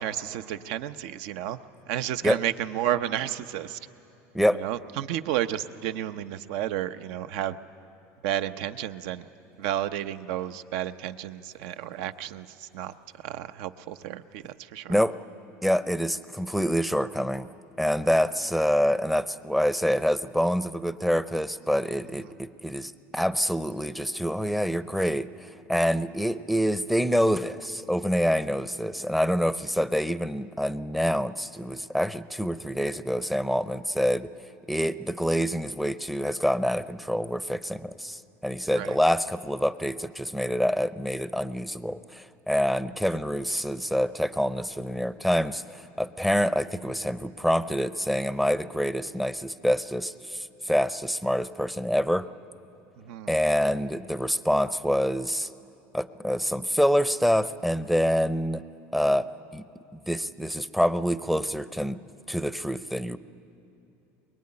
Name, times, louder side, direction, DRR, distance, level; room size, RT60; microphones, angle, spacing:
voice 1, 0.0-1.6 1.9-3.8 4.5-7.6 8.2-9.2 9.6-15.0 22.2-22.3 38.7-39.0 43.1-43.2 53.0-53.4, right 12 dB, 75° right, 11 dB, 0.9 m, -32 dB
voice 2, 15.6-17.5 17.8-34.3 34.7-52.3 53.3-55.5 55.9-58.6 58.9-59.3 59.5-59.6 60.1-62.0 62.3-63.2, equal, ahead, 14 dB, 0.6 m, -26 dB
23.0 x 22.0 x 9.8 m, 2.9 s
cardioid pair, 135°, 6 cm